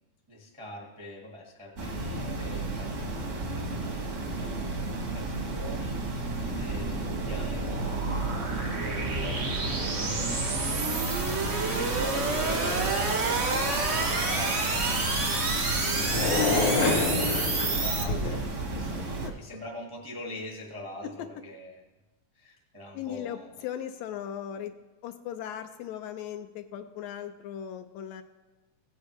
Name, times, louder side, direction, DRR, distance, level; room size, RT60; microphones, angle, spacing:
voice 1, 0.3-6.3 6.6-10.0 11.7-18.4 18.8-18.9 19.2-21.8 22.3-23.5, left 1 dB, 30° right, -1 dB, 0.4 m, -43 dB
sound 1, 1.8-19.3, right 2 dB, 55° right, 0.8 m, -34 dB
sound 2, 4.2-18.0, right 3 dB, 80° right, 0.6 m, -30 dB
sound 3, 14.7-18.5, left 3 dB, 60° left, 1.5 m, -29 dB
voice 2, 18.0-18.4 19.2-19.3 22.9-23.4 23.6-24.7 25.0-28.2, left 10 dB, 80° left, 8 dB, 1.7 m, -37 dB
16.5 x 8.3 x 3.1 m, 1.1 s
omnidirectional pair, 3.3 m